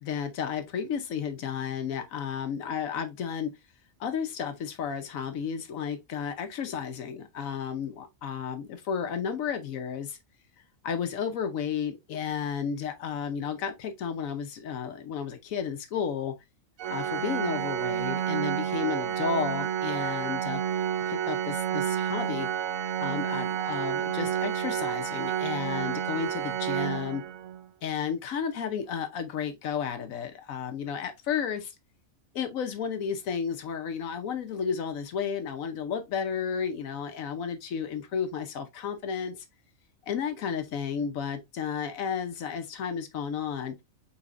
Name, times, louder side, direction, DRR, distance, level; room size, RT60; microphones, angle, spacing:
voice 1, 0.0-3.5 4.0-10.2 10.8-16.3 16.9-20.6 21.1-22.5 23.0-27.2 27.8-31.7 32.3-39.4 40.1-43.7, left 7 dB, 80° left, 1.2 m, -32 dB
Organ, 16.8-27.6, right 9 dB, 85° right, 1.0 m, -30 dB
5.5 x 4.0 x 2.4 m
omnidirectional pair, 1.4 m